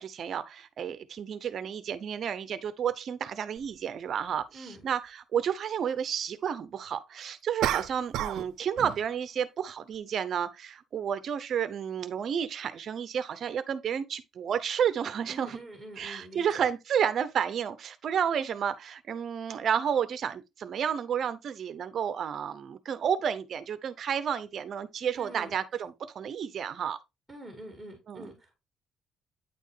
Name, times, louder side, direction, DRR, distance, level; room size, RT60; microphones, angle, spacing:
voice 1, 0.0-5.0 5.3-15.5 16.0-27.0 28.1-28.2, right 8 dB, 45° right, 0.7 m, -31 dB
sound 1, 3.6-3.7 7.6-8.5 8.8-9.1, right 12 dB, 90° right, 0.5 m, -30 dB
voice 2, 4.5-4.9 15.3-16.7 25.1-25.6 27.3-28.6, right 1 dB, ahead, 2.1 m, -46 dB
9.1 x 4.3 x 3.3 m
cardioid pair, 165°, 0 cm